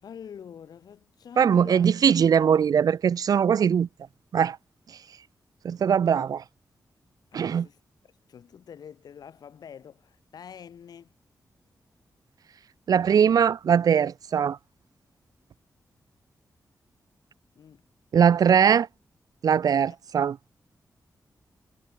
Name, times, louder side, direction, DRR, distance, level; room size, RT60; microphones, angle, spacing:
voice 1, 0.0-1.9 7.3-11.1 17.6-17.8 19.8-20.0, left 8 dB, 85° left, 6.2 m, -46 dB
voice 2, 1.4-3.9 4.3-4.6 5.6-6.4 7.3-7.7 12.9-14.6 18.1-18.9 19.4-20.4, right 7 dB, 70° right, 0.8 m, -21 dB
wide cardioid pair, 120°, 7 cm